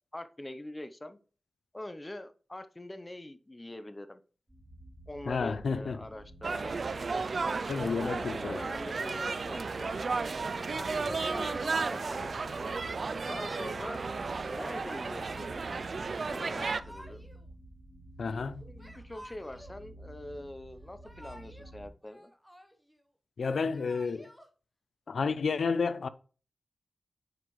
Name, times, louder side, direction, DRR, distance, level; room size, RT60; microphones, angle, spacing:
voice 1, 0.1-1.2 1.7-4.2 5.1-6.8 7.9-9.9 10.7-12.8 13.3-14.1 14.5-15.6 16.3-17.3 18.3-22.3, left 1 dB, 20° left, 0.7 m, -43 dB
sound 1, 4.5-21.9, right 1 dB, 25° right, 3.7 m, -51 dB
voice 2, 5.3-6.0 7.7-8.7 18.2-18.6 23.4-24.3 25.1-26.1, left 5 dB, 75° left, 0.5 m, -31 dB
sound 2, 6.4-16.8, right 4 dB, 55° right, 0.3 m, -34 dB
Yell / Crying sobbing, 16.6-17.4 18.8-19.8 20.8-21.7 22.0-23.0 23.5-24.5, equal, 5° left, 1.0 m, -52 dB
9.0 x 4.8 x 3.1 m
wide cardioid pair, 80°, 0 cm